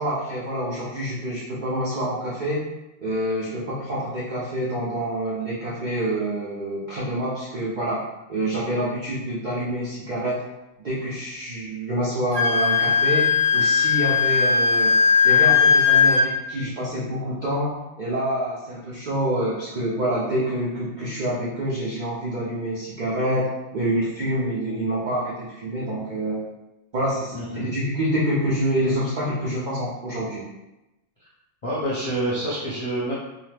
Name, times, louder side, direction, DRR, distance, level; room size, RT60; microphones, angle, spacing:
voice 1, 0.0-2.6 3.0-8.0 8.3-10.4 10.8-14.9 15.2-26.4 26.9-30.4, right 1 dB, 75° right, -7 dB, 0.4 m, -27 dB
Wind instrument woodwind instrument, 12.3-16.3, left 5 dB, 5° right, 0.6 m, -18 dB
voice 2, 27.3-27.7 31.2-31.3 31.6-33.1, right 1 dB, 45° left, -8 dB, 0.4 m, -27 dB
2.8 x 2.1 x 3.2 m, 0.98 s
omnidirectional pair, 1.5 m